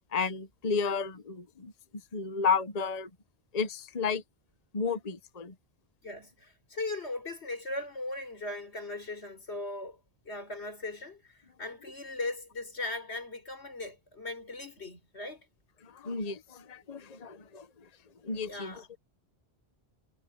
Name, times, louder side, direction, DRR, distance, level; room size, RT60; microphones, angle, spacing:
voice 1, 0.1-1.7 2.1-3.1 3.5-4.2 4.7-5.5 15.8-17.7 18.2-18.7, left 5 dB, 40° left, 1.1 m, -32 dB
voice 2, 6.0-10.0 10.2-15.5 18.4-18.9, left 2 dB, 80° left, 4.7 m, -38 dB
omnidirectional pair, 1.1 m